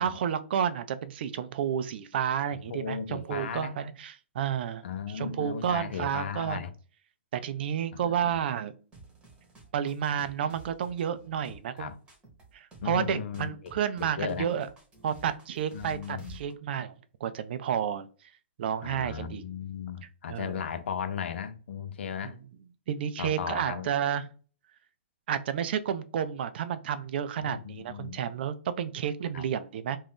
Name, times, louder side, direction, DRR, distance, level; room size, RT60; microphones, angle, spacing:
voice 1, 0.0-4.8 5.1-6.6 7.3-8.7 9.7-11.9 12.5-14.7 15.0-16.9 17.2-18.1 18.6-19.5 20.0-20.6 22.2-22.4 22.9-24.3 25.3-30.0, right 9 dB, 55° right, 0.4 m, -31 dB
voice 2, 2.7-3.7 4.8-6.7 8.0-8.4 11.8-12.0 12.8-13.7 14.0-14.5 15.7-16.4 18.8-22.4 23.2-23.9 27.4-28.2 29.3-29.4, left 7 dB, 70° left, 0.5 m, -36 dB
sound 1, 8.9-16.5, right 4 dB, 15° right, 0.9 m, -52 dB
2.6 x 2.2 x 3.4 m
hypercardioid pair, 135°, 6 cm